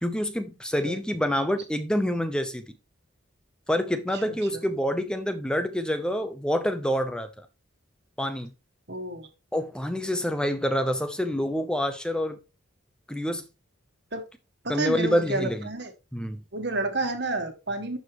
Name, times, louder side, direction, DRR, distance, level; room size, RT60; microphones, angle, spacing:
voice 1, 0.0-2.6 3.7-7.3 8.2-8.5 9.5-12.4 13.1-13.5 14.7-15.7 16.1-16.4, equal, 5° left, 0.7 m, -27 dB
voice 2, 8.9-9.3 14.1-14.2 14.6-15.9 16.5-18.0, right 2 dB, 55° right, 1.6 m, -30 dB
11.0 x 4.9 x 3.1 m
head